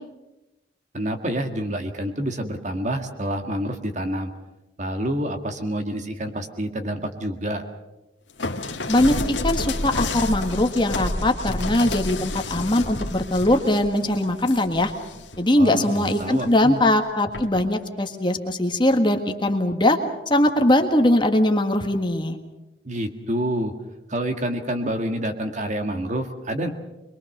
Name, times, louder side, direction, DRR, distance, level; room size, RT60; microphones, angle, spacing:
voice 1, 0.9-4.3 4.8-7.6 15.6-16.8 22.8-23.7 24.1-26.7, right 1 dB, 40° right, 6 dB, 1.9 m, -28 dB
sound 1, 8.4-15.4 15.8-16.5 17.3-17.7, left 2 dB, 80° left, 1.8 m, -30 dB
voice 2, 9.4-14.9 15.4-20.0 20.3-22.4, left 1 dB, 25° left, 5 dB, 1.7 m, -21 dB
23.5 x 22.5 x 6.7 m, 0.99 s
head